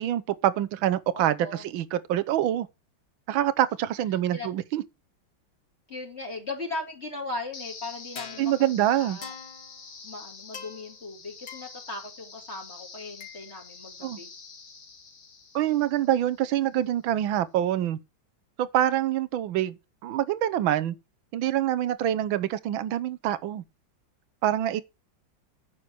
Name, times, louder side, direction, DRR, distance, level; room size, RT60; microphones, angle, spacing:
voice 1, 0.0-2.7 3.3-4.8 8.4-9.2 14.0-14.2 15.5-18.0 18.6-21.0 21.3-23.6 24.4-24.8, right 12 dB, 85° right, 1.6 m, -26 dB
voice 2, 1.1-1.7 4.1-4.5 5.9-9.3 10.0-14.3, left 2 dB, 35° left, 3.0 m, -38 dB
sound 1, 7.5-16.6, left 5 dB, 90° left, 3.1 m, -45 dB
9.6 x 6.2 x 6.1 m
omnidirectional pair, 2.1 m